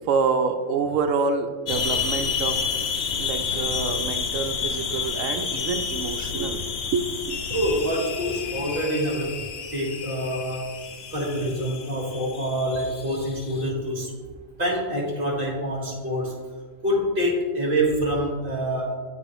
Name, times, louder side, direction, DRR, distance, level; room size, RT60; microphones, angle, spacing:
voice 1, 0.1-2.6 3.2-6.6 6.9-7.4, right 5 dB, 75° right, 7 dB, 1.0 m, -27 dB
sound 1, 1.7-13.7, left 6 dB, 60° left, 0.8 m, -30 dB
voice 2, 7.5-9.4 9.7-10.6 11.1-14.1 14.6-16.3 16.8-18.9, equal, 40° right, -4 dB, 1.9 m, -26 dB
11.0 x 4.1 x 3.1 m, 1.5 s
omnidirectional pair, 1.4 m